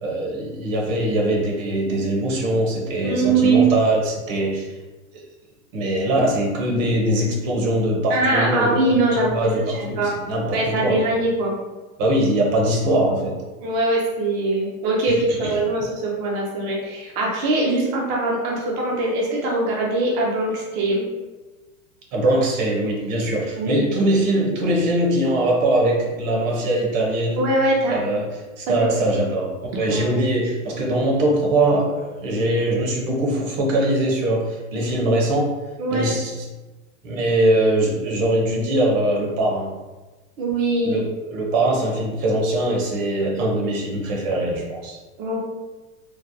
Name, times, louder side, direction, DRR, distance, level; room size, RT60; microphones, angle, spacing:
voice 1, 0.0-4.6 5.1-5.2 5.7-8.8 9.2-11.0 12.0-13.4 15.3-15.6 22.1-27.5 27.9-28.3 28.6-35.5 35.9-36.4 37.0-39.8 40.8-45.0, right 1 dB, 65° right, -1 dB, 1.0 m, -22 dB
voice 2, 3.0-3.7 8.1-10.1 10.5-11.6 13.6-21.1 23.6-23.8 27.4-28.0 28.7-28.9 29.9-30.2 35.8-36.1 40.4-41.0 45.2-45.4, right 2 dB, 30° right, -3 dB, 0.3 m, -22 dB
3.2 x 2.1 x 2.6 m, 1.2 s
supercardioid pair, 135°, 42 cm